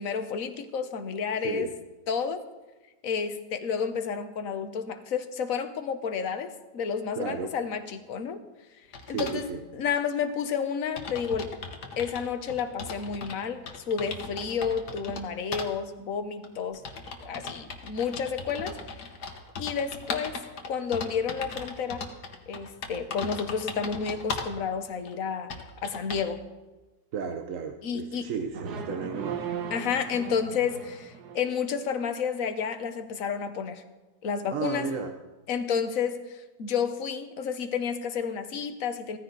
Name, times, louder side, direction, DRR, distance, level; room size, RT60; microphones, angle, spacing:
voice 1, 0.0-1.7 2.1-2.4 3.0-8.4 9.1-9.5 9.7-11.5 12.0-16.8 17.2-18.8 19.6-20.4 20.7-22.0 22.5-25.5 25.8-26.4 27.8-28.3 29.7-33.8 34.2-34.9 35.5-39.2, left 6 dB, 60° left, 8 dB, 1.4 m, -31 dB
voice 2, 1.4-1.7 7.1-7.5 9.1-9.6 27.1-29.4 34.5-35.1, right 6 dB, 60° right, 6 dB, 1.1 m, -33 dB
sound 1, 8.9-9.4 10.3-10.4 10.6-10.7 11.0-13.4 13.7-15.2 15.5-15.7 16.4-24.6 25.1-25.2 25.5-26.3, left 4 dB, 85° left, 1.9 m, -38 dB
sound 2, 28.5-31.5, right 7 dB, 85° right, 1.6 m, -37 dB
15.5 x 14.5 x 4.0 m, 1.2 s
omnidirectional pair, 1.7 m